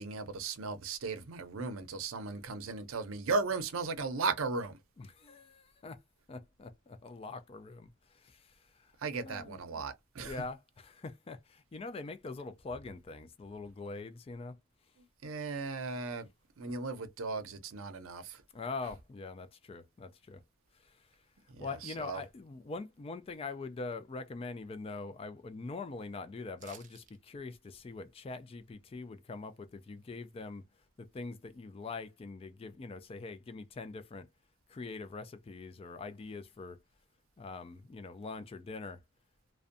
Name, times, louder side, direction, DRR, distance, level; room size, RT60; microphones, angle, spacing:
voice 1, 0.0-4.8 9.0-10.4 15.2-16.3 16.6-18.4 21.5-22.2, right 4 dB, 85° right, 0.6 m, -36 dB
voice 2, 5.0-6.0 6.3-8.9 9.2-9.8 10.2-14.6 18.5-20.4 20.8-21.1 21.6-30.6 31.0-34.3 34.7-36.8 37.4-39.0, left 3 dB, 30° left, 0.3 m, -43 dB
sound 1, 26.6-27.2 27.5-27.6, right 8 dB, 40° right, 0.4 m, -55 dB
2.5 x 2.1 x 2.5 m
head